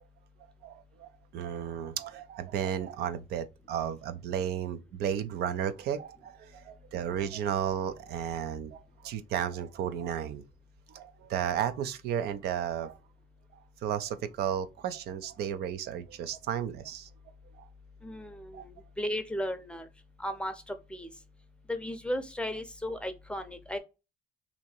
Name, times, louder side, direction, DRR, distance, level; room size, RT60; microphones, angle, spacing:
voice 1, 0.6-10.4 10.9-13.0 13.5-17.1 17.6-17.7 18.5-18.6, right 9 dB, 75° right, 0.5 m, -34 dB
voice 2, 18.0-19.9 20.2-21.1 21.7-23.8, equal, 5° left, 0.6 m, -35 dB
2.9 x 2.6 x 4.3 m
cardioid pair, 110°, 17 cm